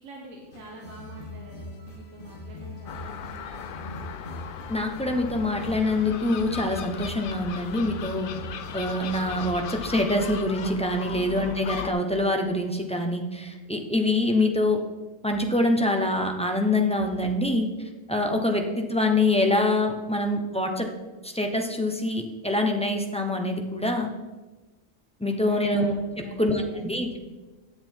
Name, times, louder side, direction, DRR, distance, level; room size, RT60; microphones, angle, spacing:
voice 1, 0.0-4.2 11.1-11.4 25.4-25.9 26.2-27.2, right 1 dB, 80° right, -2 dB, 1.7 m, -45 dB
sound 1, 0.5-9.8, left 2 dB, 45° left, 1.4 m, -41 dB
Gull seagull, 2.9-11.9, left 8 dB, 60° left, 0.6 m, -38 dB
voice 2, 4.7-8.3 8.7-14.8 15.2-20.9 21.2-24.1 25.2-27.1, left 1 dB, 5° left, 3 dB, 0.7 m, -25 dB
10.0 x 7.7 x 4.5 m, 1.2 s
omnidirectional pair, 1.4 m